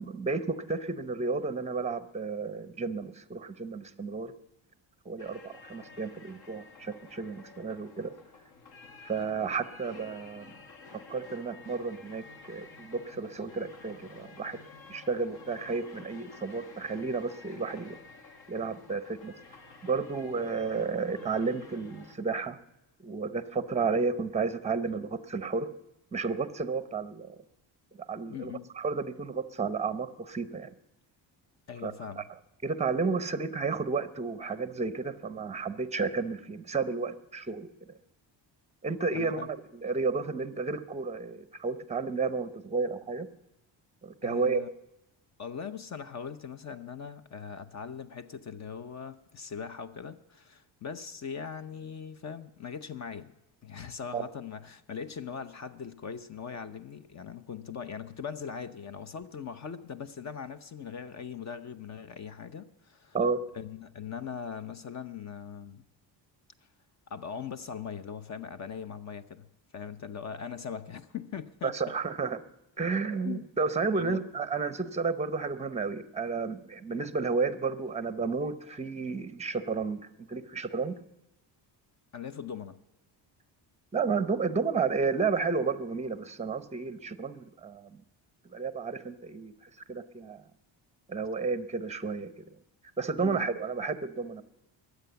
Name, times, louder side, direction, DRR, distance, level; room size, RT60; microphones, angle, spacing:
voice 1, 0.0-4.3 5.1-8.1 9.0-10.5 10.9-14.6 14.9-18.0 18.5-19.3 19.8-22.6 23.0-25.7 26.1-27.4 28.1-28.5 28.8-30.7 31.8-32.2 32.6-37.7 38.8-43.3 44.0-44.6 54.1-54.2 63.1-63.4 71.6-72.4 72.8-80.0 80.3-81.0 83.9-88.0 88.5-89.5 89.9-90.4 91.1-92.3 93.0-94.4, right 4 dB, 15° right, 0.7 m, -32 dB
sound 1, 5.2-22.2, left 4 dB, 55° left, 1.8 m, -51 dB
voice 2, 28.3-28.7 31.7-32.3 39.1-39.5 44.2-44.7 45.4-53.3 53.6-63.2 63.5-65.8 67.1-69.5 69.7-71.7 73.2-73.4 73.9-74.3 82.1-82.8 93.2-93.5, left 7 dB, 40° left, 0.7 m, -40 dB
22.0 x 8.1 x 6.9 m
cardioid pair, 145°, 45 cm